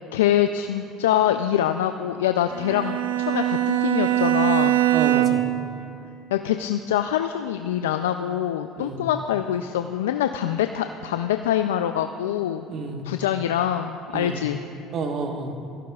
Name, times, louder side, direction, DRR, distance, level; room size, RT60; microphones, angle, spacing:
voice 1, 0.1-4.8 6.3-12.7 13.0-14.6, left 11 dB, 90° left, 8 dB, 0.3 m, -24 dB
Bowed string instrument, 2.5-5.6, right 14 dB, 90° right, 0.6 m, -22 dB
voice 2, 4.9-5.4 8.8-9.0 12.7-13.0 14.1-14.4 14.9-15.5, right 4 dB, 50° right, 4 dB, 1.3 m, -30 dB
18.0 x 15.5 x 2.4 m, 2.4 s
hypercardioid pair, 75°, 0 cm